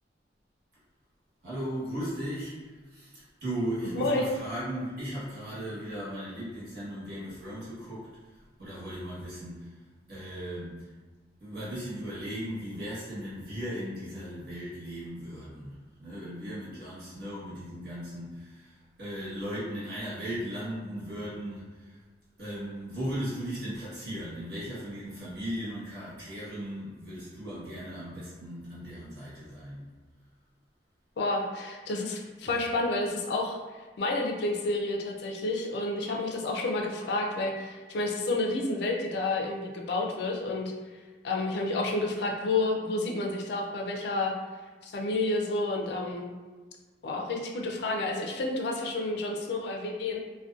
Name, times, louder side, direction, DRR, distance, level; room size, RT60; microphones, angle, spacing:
voice 1, 1.4-9.8 10.1-10.9 11.4-22.0 22.4-29.9 32.4-32.5, equal, 60° right, -10 dB, 1.2 m, -37 dB
voice 2, 3.8-4.3 31.2-40.7 41.2-44.3 44.8-46.3 47.0-50.2, left 2 dB, 65° left, 0 dB, 0.4 m, -30 dB
2.6 x 2.2 x 2.3 m, 1.3 s
head